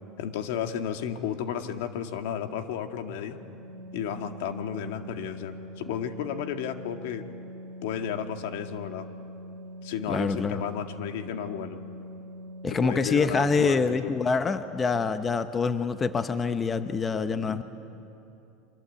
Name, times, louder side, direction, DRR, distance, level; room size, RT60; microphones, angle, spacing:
voice 1, 0.2-3.4 3.9-7.2 7.8-9.1 9.8-11.8 12.7-14.1 17.2-17.6, left 9 dB, 80° left, 6 dB, 1.9 m, -33 dB
Organ, 3.0-13.6, equal, 65° right, 2.6 m, -43 dB
voice 2, 10.1-10.6 12.6-17.6, left 4 dB, 20° left, 10 dB, 0.9 m, -26 dB
28.0 x 24.5 x 8.4 m, 2.8 s
supercardioid pair, 130°, 0 cm